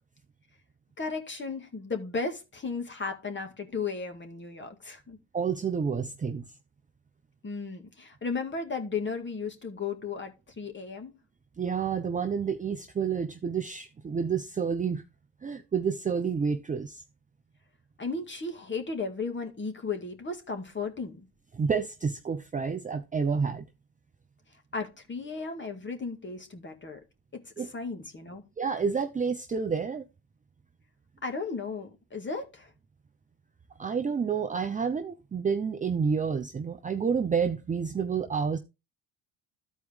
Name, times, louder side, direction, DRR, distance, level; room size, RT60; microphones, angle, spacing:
voice 1, 1.0-5.2 7.4-11.1 18.0-21.3 24.7-27.0 27.3-28.4 31.2-32.7, left 4 dB, 25° left, 2.1 m, -35 dB
voice 2, 5.3-6.5 11.6-15.0 15.4-17.0 21.5-23.7 27.6-27.7 28.6-30.1 33.8-38.6, right 6 dB, 15° right, 0.6 m, -29 dB
13.5 x 4.5 x 3.5 m
hypercardioid pair, 70°, 45 cm